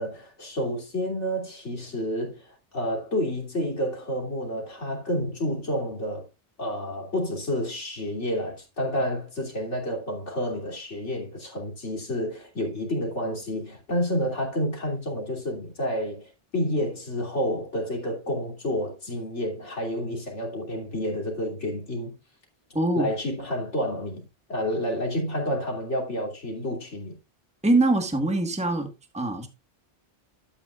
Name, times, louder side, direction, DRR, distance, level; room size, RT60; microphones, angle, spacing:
voice 1, 0.0-6.3 6.6-22.1 22.9-24.2 24.5-27.2, equal, 90° left, 3.4 m, -29 dB
voice 2, 22.7-23.1 27.6-29.5, right 2 dB, 5° right, 1.4 m, -23 dB
12.0 x 9.0 x 2.4 m
omnidirectional pair, 1.2 m